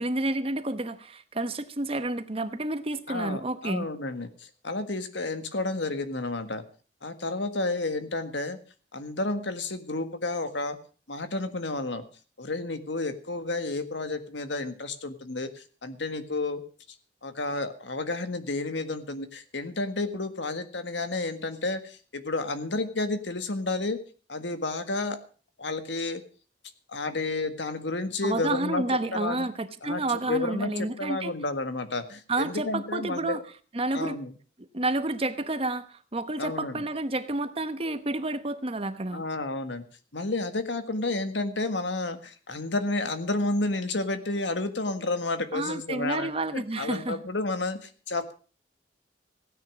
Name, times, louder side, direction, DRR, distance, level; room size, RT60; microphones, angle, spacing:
voice 1, 0.0-3.9 28.2-31.3 32.3-33.4 33.7-34.2 34.7-39.2 45.5-47.2, right 2 dB, 30° right, 11 dB, 1.0 m, -30 dB
voice 2, 3.1-6.6 7.0-8.6 8.9-10.8 11.1-12.0 12.4-16.6 17.2-24.0 24.3-25.2 25.6-26.2 26.9-28.8 29.1-29.5 29.8-30.7 31.0-33.4 33.9-34.3 36.4-36.7 39.1-39.8 40.1-48.3, left 2 dB, 75° left, 10 dB, 1.7 m, -31 dB
16.0 x 10.0 x 6.2 m, 0.40 s
head